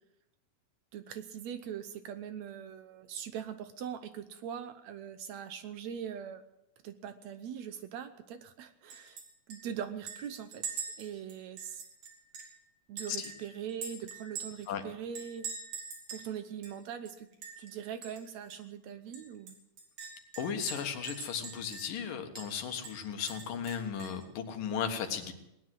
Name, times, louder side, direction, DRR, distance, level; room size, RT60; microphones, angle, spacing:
voice 1, 0.9-6.4 6.8-9.2 9.5-11.8 12.9-15.5 16.1-17.3 17.6-19.6, right 8 dB, 70° right, 10 dB, 1.9 m, -41 dB
Chink clink, 8.9-9.2 9.5-9.6 10.1-12.6 13.0-14.7 15.1-16.3 16.6-16.7 17.1-17.7 18.0-18.2 18.5-18.6 19.1-22.0 22.4-22.5 22.8-24.2, right 5 dB, 85° right, 4.7 m, -43 dB
voice 2, 20.4-25.3, left 7 dB, 90° left, 6 dB, 3.2 m, -36 dB
18.5 x 10.0 x 7.7 m, 0.86 s
omnidirectional pair, 3.7 m